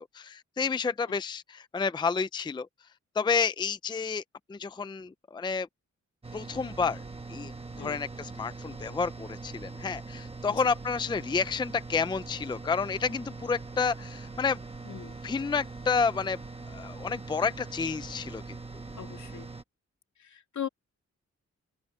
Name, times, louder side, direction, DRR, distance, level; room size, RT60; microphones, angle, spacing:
voice 1, 0.1-2.7 3.2-4.2 4.5-5.7 6.3-7.0 7.3-14.6 15.2-16.4 16.7-18.6, left 5 dB, 15° left, 0.4 m, -30 dB
sound 1, 6.2-19.6, right 3 dB, 20° right, 1.4 m, -42 dB
voice 2, 14.8-15.2 18.9-19.5 20.2-20.7, left 9 dB, 75° left, 2.4 m, -39 dB
wide cardioid pair, 155°, 29 cm